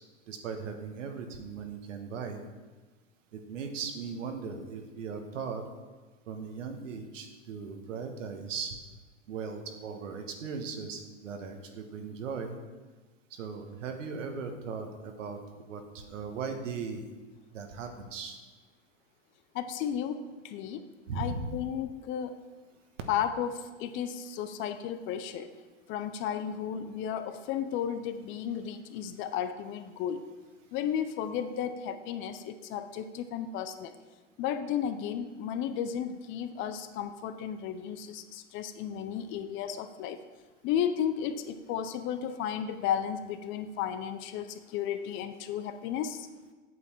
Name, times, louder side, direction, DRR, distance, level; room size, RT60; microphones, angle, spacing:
voice 1, 0.3-2.4 3.3-5.6 6.3-8.7 9.3-12.6 13.3-15.4 15.7-17.1 17.5-18.4 21.1-21.5, right 5 dB, 75° right, 5 dB, 1.4 m, -38 dB
voice 2, 19.5-20.9 21.1-22.4 23.1-25.5 25.9-30.2 30.7-33.9 34.4-40.2 40.6-46.3, left 9 dB, 30° left, 10 dB, 0.5 m, -33 dB
8.3 x 7.0 x 4.5 m, 1.3 s
hypercardioid pair, 110°, 38 cm